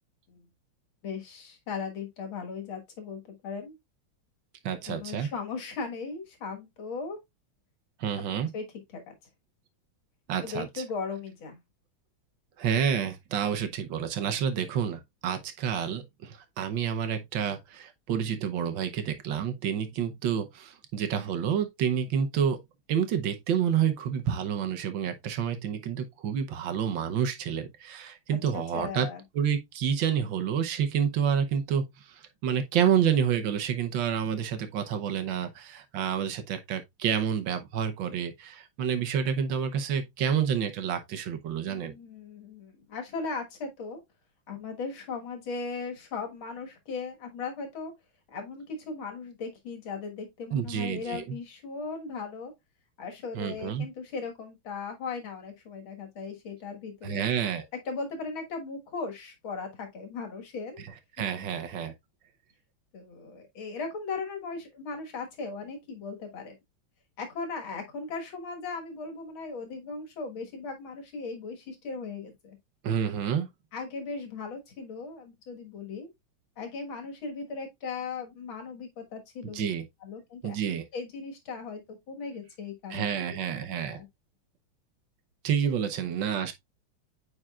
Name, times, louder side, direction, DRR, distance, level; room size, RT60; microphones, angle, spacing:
voice 1, 1.0-3.8 4.9-7.2 8.5-8.6 8.9-9.1 10.4-11.6 28.5-29.2 41.6-44.0 44.5-47.9 48.3-52.5 53.0-57.3 57.9-60.8 61.4-61.6 62.9-66.6 67.2-72.6 73.7-76.1 76.6-79.7 80.0-80.6 80.9-83.3 83.8-84.1, left 4 dB, 75° left, 2.3 m, -37 dB
voice 2, 4.6-5.3 8.0-8.5 10.3-10.8 12.6-22.6 22.9-29.1 29.3-41.9 50.5-51.4 53.3-53.9 57.0-57.7 60.8-60.9 61.2-61.9 72.8-73.5 79.5-79.8 80.4-80.8 82.9-84.0 85.4-86.5, right 8 dB, 70° right, 1.5 m, -29 dB
8.9 x 4.9 x 2.3 m
omnidirectional pair, 2.3 m